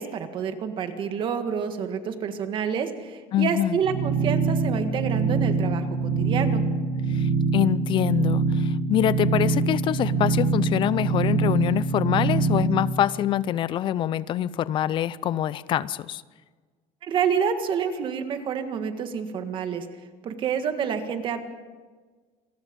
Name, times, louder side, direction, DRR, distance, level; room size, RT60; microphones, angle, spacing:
voice 1, 0.0-6.6 17.0-19.9 20.2-21.4, right 7 dB, 40° right, 8 dB, 1.7 m, -28 dB
voice 2, 3.3-3.8 7.1-16.2, left 11 dB, 40° left, 18 dB, 0.6 m, -25 dB
sound 1, 3.8-12.7, right 4 dB, 65° right, 4.5 m, -24 dB
28.0 x 20.0 x 5.3 m, 1.5 s
cardioid pair, 165°, 13 cm